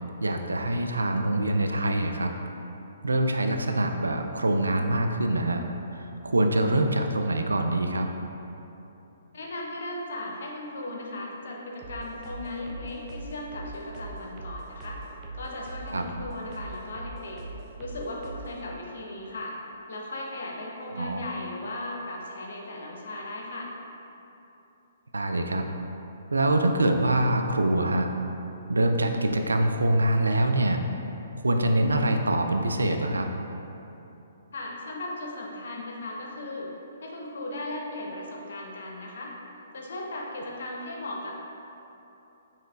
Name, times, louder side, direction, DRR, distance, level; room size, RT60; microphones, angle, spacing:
voice 1, 0.2-2.3 3.0-5.7 5.9-8.1 15.9-16.0 20.9-21.2 25.1-25.7 26.3-28.1 28.7-30.8 31.4-33.3, right 1 dB, 90° right, 5 dB, 0.3 m, -24 dB
voice 2, 9.3-15.0 15.3-17.4 17.8-19.6 19.9-23.7 34.5-36.7 37.0-39.3 39.7-41.4, left 1 dB, 65° left, -1 dB, 0.7 m, -37 dB
sound 1, 11.8-18.6, right 2 dB, 30° right, 0.5 m, -41 dB
5.6 x 3.1 x 2.4 m, 3.0 s
hypercardioid pair, 135°, 0 cm